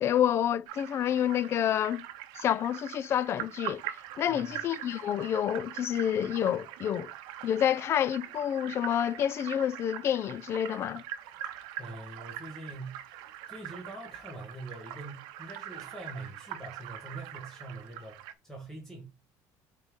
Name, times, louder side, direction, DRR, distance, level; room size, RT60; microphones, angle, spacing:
voice 1, 0.0-2.0 2.3-3.8 4.2-7.1 7.4-11.0, left 10 dB, 35° left, 0.3 m, -28 dB
sound 1, 0.7-18.3, right 12 dB, 75° right, 0.7 m, -43 dB
voice 2, 4.3-4.6 11.8-13.2 13.5-19.1, right 2 dB, 5° left, 1.3 m, -44 dB
7.6 x 3.6 x 3.7 m
cardioid pair, 160°, 7 cm